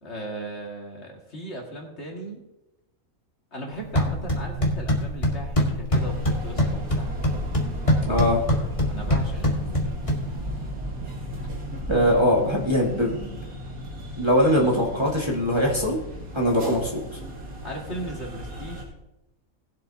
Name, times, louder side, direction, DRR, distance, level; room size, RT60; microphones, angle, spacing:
voice 1, 0.0-2.4 3.5-7.1 8.8-9.9 16.6-16.8 17.6-18.9, right 1 dB, 50° left, -1 dB, 2.1 m, -37 dB
sound 1, 3.7-10.7, equal, 25° left, 1.6 m, -25 dB
sound 2, 5.9-18.8, equal, 80° right, 2.3 m, -35 dB
voice 2, 8.1-8.4 11.9-13.3 14.2-16.0 16.3-16.9, equal, 20° right, -4 dB, 1.7 m, -21 dB
18.5 x 7.5 x 2.8 m, 0.94 s
omnidirectional pair, 1.5 m